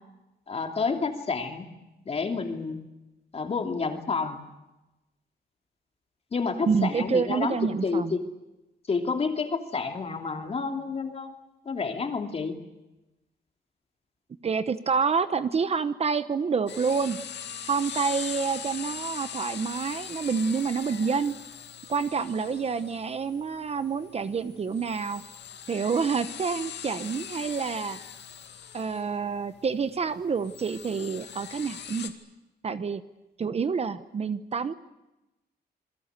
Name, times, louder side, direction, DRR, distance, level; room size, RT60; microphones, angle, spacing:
voice 1, 0.5-1.7 2.1-2.8 3.3-4.4 6.3-8.2 8.9-11.3 11.6-12.6, left 4 dB, 35° left, 5 dB, 2.9 m, -29 dB
voice 2, 6.7-8.2 14.4-17.2 17.7-21.3 21.9-25.2 25.7-28.0 28.7-32.1 32.6-33.0 33.4-34.7, right 5 dB, 35° right, 12 dB, 1.0 m, -28 dB
sound 1, 16.7-32.1, left 8 dB, 80° left, 2.4 m, -41 dB
27.5 x 22.0 x 8.2 m, 0.98 s
wide cardioid pair, 180°, 18 cm